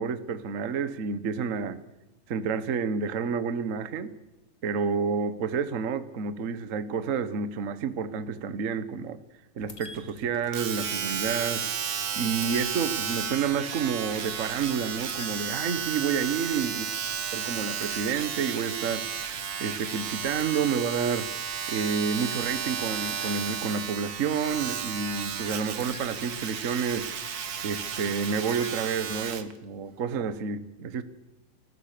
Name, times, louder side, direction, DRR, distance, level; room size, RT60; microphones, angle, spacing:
voice 1, 0.0-1.8 2.3-4.1 4.6-9.2 9.6-16.8 17.3-19.3 19.6-21.3 21.7-27.4 27.6-31.0, right 6 dB, 70° right, 12 dB, 0.7 m, -29 dB
sound 1, 9.6-29.3, left 3 dB, 30° left, 2.3 m, -50 dB
Domestic sounds home sounds, 10.5-29.5 30.2-30.3, right 7 dB, 50° right, 1.1 m, -33 dB
29.5 x 15.0 x 6.8 m, 1.0 s
omnidirectional pair, 3.3 m